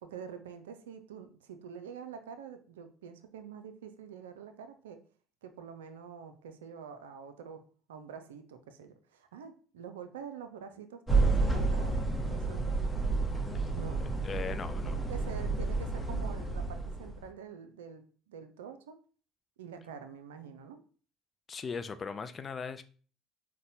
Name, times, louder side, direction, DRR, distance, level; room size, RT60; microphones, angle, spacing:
voice 1, 0.0-5.0 5.4-7.6 7.9-12.8 13.7-14.0 14.8-19.0 19.6-20.8, right 7 dB, 85° right, 8 dB, 0.3 m, -46 dB
sound 1, 11.1-17.3, right 3 dB, 10° left, 0.8 m, -30 dB
voice 2, 14.2-15.0 21.5-22.8, left 5 dB, 35° left, 11 dB, 0.3 m, -39 dB
4.0 x 2.1 x 2.6 m, 0.41 s
hypercardioid pair, 70°, 0 cm